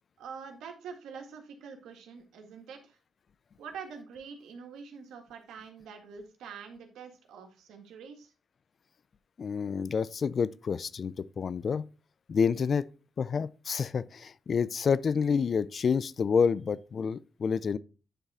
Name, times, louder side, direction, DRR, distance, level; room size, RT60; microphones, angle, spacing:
voice 1, 0.2-3.0 3.6-8.3, right 6 dB, 90° right, 1.7 m, -45 dB
voice 2, 9.4-11.8 12.3-12.9 13.2-17.8, left 6 dB, 55° left, 0.5 m, -28 dB
10.0 x 3.6 x 4.2 m
cardioid pair, 80°, 0 cm